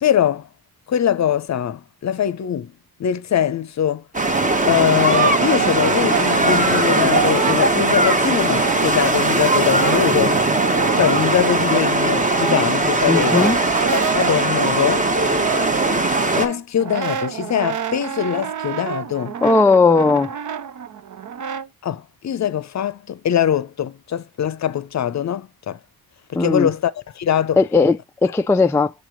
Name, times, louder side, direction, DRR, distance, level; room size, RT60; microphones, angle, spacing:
voice 1, 0.0-0.5 0.9-2.7 3.0-4.0 4.7-10.4 11.0-13.5 14.1-15.1 16.4-19.4 21.8-25.8 26.3-27.6, left 9 dB, 45° left, 0.7 m, -22 dB
sound 1, 4.1-16.5, right 2 dB, 20° right, 1.1 m, -19 dB
Brass instrument, 4.8-9.2 9.5-21.7, right 7 dB, 50° right, 0.8 m, -29 dB
voice 2, 13.1-13.6 19.4-20.3 26.3-26.7 27.6-28.9, left 3 dB, 10° left, 0.3 m, -16 dB
7.0 x 3.0 x 5.0 m
cardioid pair, 85°, 38 cm